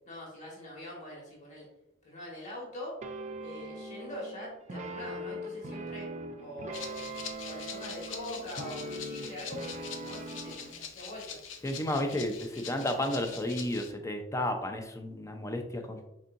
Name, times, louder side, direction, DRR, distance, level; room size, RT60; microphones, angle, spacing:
voice 1, 0.0-1.6 2.0-3.0 3.4-6.1 6.4-7.0 7.4-11.4, left 1 dB, 40° left, -4 dB, 1.5 m, -43 dB
sound 1, 3.0-10.7, right 1 dB, 40° right, 0.5 m, -41 dB
Rattle (instrument), 6.7-13.9, left 7 dB, 85° left, 0.6 m, -44 dB
voice 2, 11.6-16.1, left 1 dB, 15° left, 5 dB, 0.5 m, -32 dB
4.5 x 4.2 x 2.5 m, 0.88 s
head